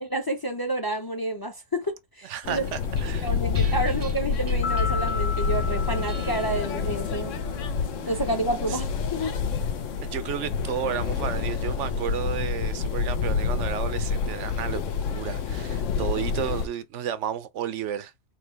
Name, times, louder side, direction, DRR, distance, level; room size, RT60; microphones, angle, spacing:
voice 1, 0.0-2.7 3.2-7.3 8.1-9.4, right 1 dB, 20° left, 0.6 m, -29 dB
voice 2, 2.2-3.3 3.6-3.7 8.7-8.8 10.0-14.8 15.1-18.1, right 9 dB, 75° right, 0.9 m, -32 dB
sound 1, 2.4-16.7, left 6 dB, 80° left, 1.1 m, -28 dB
sound 2, 2.5-13.1, right 5 dB, 40° right, 0.6 m, -45 dB
sound 3, 4.6-7.4, left 5 dB, 60° left, 0.9 m, -34 dB
3.8 x 3.0 x 4.6 m
omnidirectional pair, 1.3 m